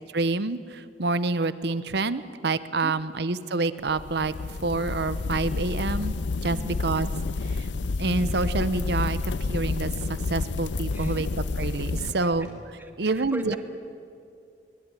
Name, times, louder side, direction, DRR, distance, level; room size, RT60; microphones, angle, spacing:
voice 1, 0.1-4.3 4.6-6.1 6.4-7.1 7.4-7.7 8.0-12.5 13.0-13.6, right 3 dB, 65° right, 14 dB, 1.0 m, -27 dB
sound 1, 3.9-12.1, left 3 dB, 85° left, 0.6 m, -29 dB
Tap, 9.1-12.7, equal, 65° left, 5.7 m, -53 dB
voice 2, 10.9-11.3 12.0-12.3 12.8-13.6, equal, 10° right, 4 dB, 2.0 m, -39 dB
24.0 x 20.0 x 9.9 m, 2.5 s
head